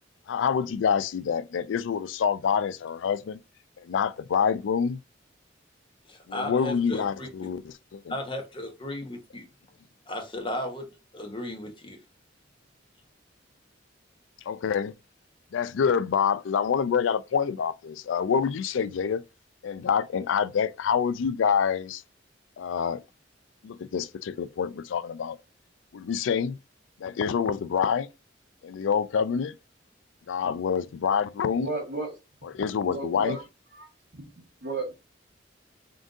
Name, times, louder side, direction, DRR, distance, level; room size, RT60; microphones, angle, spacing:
voice 1, 0.3-3.4 3.9-5.0 6.3-8.1 14.5-14.9 15.5-19.2 19.6-22.0 22.6-23.0 23.6-25.4 25.9-26.6 27.0-28.1 28.6-29.5 30.3-31.7 32.5-33.4, left 7 dB, 90° left, 0.3 m, -26 dB
voice 2, 6.1-7.3 8.1-9.5 10.1-10.9 11.1-12.0, left 1 dB, 25° left, 0.9 m, -35 dB
voice 3, 31.4-32.1 32.6-33.4 33.7-34.3 34.6-35.0, right 2 dB, 60° right, 1.6 m, -34 dB
3.8 x 2.6 x 3.6 m
head